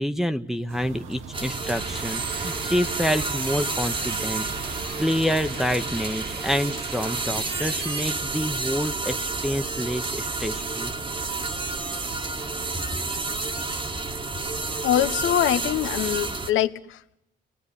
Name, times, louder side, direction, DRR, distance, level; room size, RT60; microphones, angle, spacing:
voice 1, 0.0-10.9, equal, ahead, 6 dB, 1.0 m, -28 dB
sound 1, 0.7-5.8, right 6 dB, 85° right, 1.6 m, -40 dB
sound 2, 1.3-16.5, right 3 dB, 25° right, 1.5 m, -30 dB
sound 3, 1.7-8.2, right 6 dB, 55° right, 1.5 m, -40 dB
voice 2, 14.8-17.1, left 12 dB, 80° left, 12 dB, 1.1 m, -24 dB
29.5 x 19.5 x 9.9 m, 0.89 s
cardioid pair, 90°, 20 cm